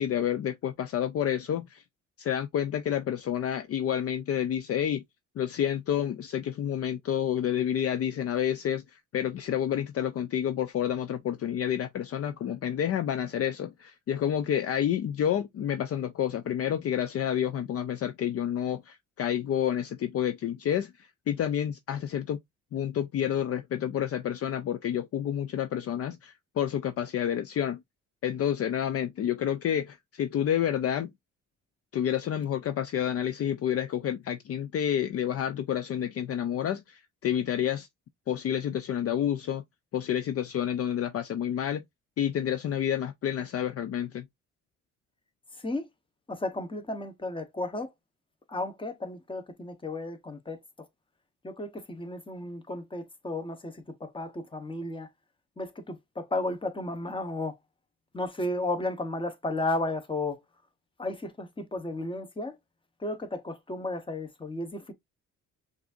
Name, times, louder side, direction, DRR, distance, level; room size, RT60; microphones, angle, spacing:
voice 1, 0.0-1.8 2.2-5.0 5.4-22.4 22.7-27.8 28.2-31.1 31.9-37.9 38.3-39.6 39.9-41.8 42.2-44.2, left 10 dB, 50° left, 0.5 m, -29 dB
voice 2, 45.5-45.9 46.3-47.9 48.5-50.6 51.4-55.1 55.6-57.6 58.1-60.4 61.0-62.6 63.0-64.9, left 2 dB, 15° left, 1.0 m, -33 dB
6.0 x 2.7 x 2.4 m
cardioid pair, 90°, 30 cm